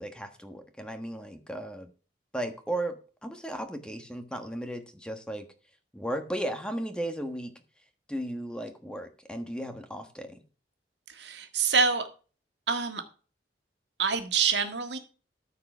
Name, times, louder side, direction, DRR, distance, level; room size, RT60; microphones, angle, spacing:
voice 1, 0.0-1.9 2.3-5.4 5.9-7.5 8.1-10.3, right 1 dB, 5° left, 7 dB, 1.2 m, -35 dB
voice 2, 11.1-12.0 12.7-13.0 14.0-15.0, right 5 dB, 75° right, 7 dB, 1.7 m, -26 dB
13.5 x 4.8 x 6.0 m, 0.36 s
head